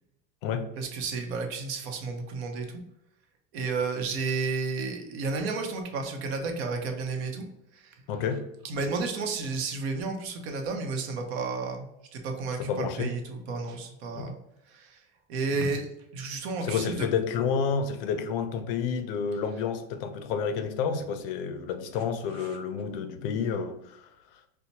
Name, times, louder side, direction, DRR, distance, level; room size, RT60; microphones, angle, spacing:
voice 1, 0.8-2.7 3.5-7.5 7.7-7.9 8.6-14.4 14.7-15.0 15.3-17.1 22.4-22.6, right 4 dB, 75° right, 0.8 m, -32 dB
voice 2, 8.1-8.5 12.6-13.2 14.1-14.3 16.6-24.1, left 6 dB, 55° left, 0.5 m, -30 dB
4.4 x 2.1 x 2.7 m
cardioid pair, 175°, 33 cm